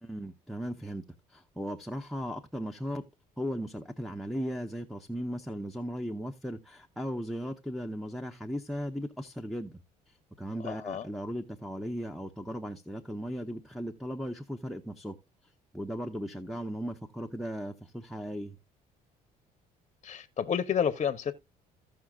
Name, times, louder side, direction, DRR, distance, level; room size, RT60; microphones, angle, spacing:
voice 1, 0.0-1.0 1.3-3.0 3.4-15.2 15.4-18.6, equal, ahead, 0.7 m, -37 dB
voice 2, 10.6-11.1 20.0-21.3, left 8 dB, 40° left, 0.7 m, -30 dB
15.5 x 5.6 x 2.3 m
cardioid pair, 110°, 17 cm